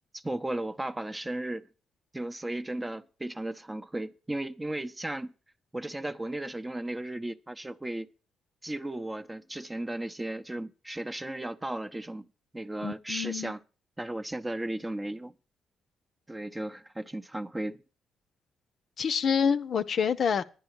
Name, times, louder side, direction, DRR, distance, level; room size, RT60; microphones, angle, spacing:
voice 1, 0.1-1.7 2.1-5.3 5.7-8.1 8.6-12.2 12.5-13.6 14.0-15.3 16.3-17.8, right 1 dB, 15° right, 0.7 m, -35 dB
voice 2, 12.8-13.5 19.0-20.4, left 6 dB, 55° left, 0.7 m, -27 dB
10.5 x 9.9 x 4.7 m
cardioid pair, 90°, 0 cm